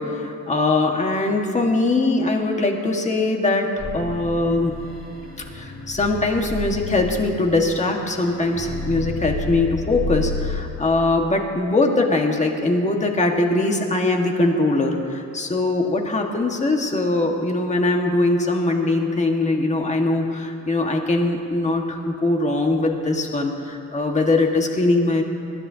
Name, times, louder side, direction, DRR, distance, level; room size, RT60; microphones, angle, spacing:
voice 1, 0.0-4.7 5.5-25.2, left 2 dB, 25° left, 2 dB, 1.7 m, -21 dB
sound 1, 3.8-10.6, left 2 dB, 40° left, 3.0 m, -31 dB
20.5 x 13.5 x 2.9 m, 2.6 s
cardioid pair, 90°, 30 cm